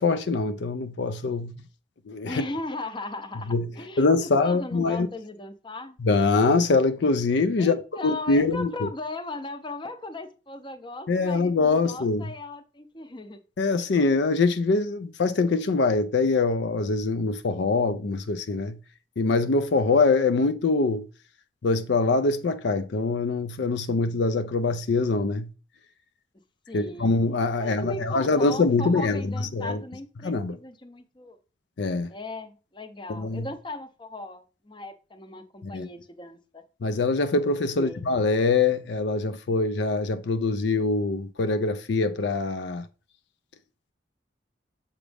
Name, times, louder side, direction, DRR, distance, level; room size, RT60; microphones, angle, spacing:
voice 1, 0.0-1.5 2.1-2.4 3.5-3.7 4.0-5.1 6.0-7.8 8.0-8.9 11.1-12.3 13.6-18.8 19.2-21.1 21.6-25.5 26.7-29.8 30.2-30.6 31.8-32.1 33.1-33.5 35.6-35.9 36.8-42.8, left 3 dB, 65° left, 0.4 m, -24 dB
voice 2, 2.3-6.0 7.6-13.4 26.7-27.1 27.6-31.4 32.1-36.6 37.7-38.0, left 2 dB, 25° left, 0.6 m, -37 dB
7.1 x 5.0 x 3.4 m
head